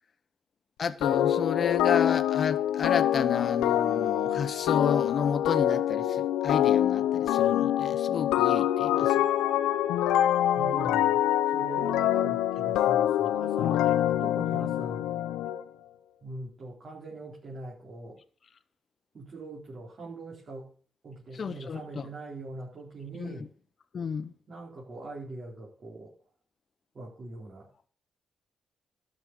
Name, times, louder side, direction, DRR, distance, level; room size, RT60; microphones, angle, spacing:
voice 1, 0.8-9.2 21.3-22.1 23.2-23.3 23.9-24.3, left 6 dB, 55° left, 0.9 m, -31 dB
sound 1, 1.0-15.6, left 12 dB, 85° left, 0.6 m, -25 dB
voice 2, 10.6-13.8 14.2-15.0 16.2-18.2 19.1-20.7 21.0-23.5 24.5-26.1 26.9-27.9, right 2 dB, 50° right, 4.2 m, -42 dB
12.5 x 5.9 x 8.0 m
supercardioid pair, 50°, 0 cm